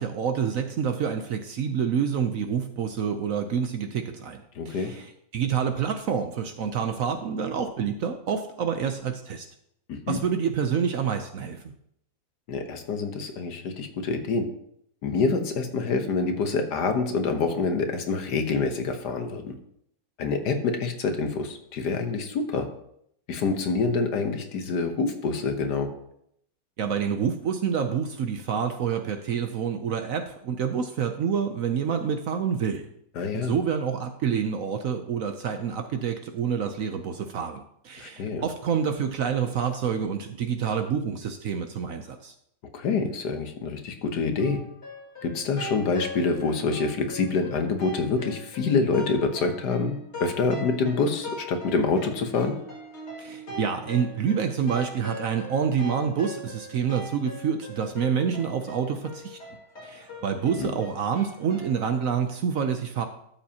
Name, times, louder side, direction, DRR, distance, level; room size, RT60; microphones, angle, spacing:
voice 1, 0.0-9.5 10.1-11.6 26.8-32.9 33.3-42.3 53.2-59.4 59.8-63.1, right 7 dB, 65° right, 6 dB, 0.9 m, -27 dB
voice 2, 4.5-4.9 9.9-10.2 12.5-14.5 15.0-19.5 20.2-22.7 23.3-25.9 33.2-33.6 38.0-38.5 42.7-44.6 45.2-52.5 60.6-60.7, left 4 dB, 70° left, 6 dB, 1.6 m, -26 dB
sound 1, 44.4-61.8, left 1 dB, 40° left, 2.6 m, -41 dB
12.5 x 7.1 x 2.9 m, 0.72 s
omnidirectional pair, 1.9 m